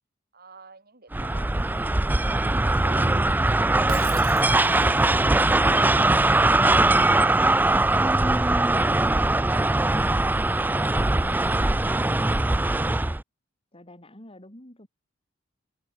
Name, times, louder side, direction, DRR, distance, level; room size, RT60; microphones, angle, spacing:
voice 1, 0.3-1.9 2.3-4.2 10.8-11.8, right 3 dB, 50° right, 4.4 m, -46 dB
sound 1, 1.1-13.2, right 2 dB, 10° right, 0.4 m, -21 dB
Shatter, 3.9-5.1, right 9 dB, 75° right, 1.7 m, -40 dB
voice 2, 13.7-14.9, left 1 dB, 30° left, 5.0 m, -49 dB
head